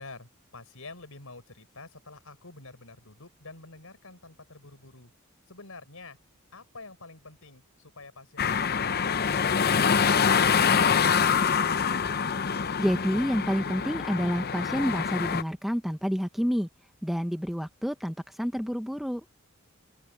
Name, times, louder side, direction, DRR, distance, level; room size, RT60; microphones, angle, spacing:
voice 1, 0.0-5.1 5.5-6.2 6.5-11.6, left 3 dB, 75° left, 5.0 m, -48 dB
sound 1, 8.4-15.4, left 6 dB, 45° left, 0.7 m, -25 dB
voice 2, 12.8-16.7 17.0-19.2, equal, ahead, 1.0 m, -29 dB
open air
head